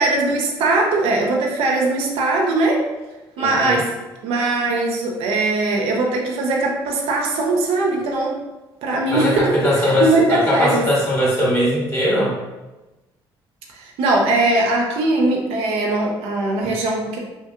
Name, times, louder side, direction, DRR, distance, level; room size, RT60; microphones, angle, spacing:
voice 1, 0.0-2.9 3.4-3.9 4.2-8.4 8.8-10.9 13.7-17.2, right 2 dB, 80° right, 0 dB, 0.5 m, -20 dB
voice 2, 3.4-3.8 9.1-12.3, equal, 25° left, -6 dB, 1.4 m, -20 dB
3.1 x 2.6 x 2.3 m, 1.1 s
supercardioid pair, 75°, 10 cm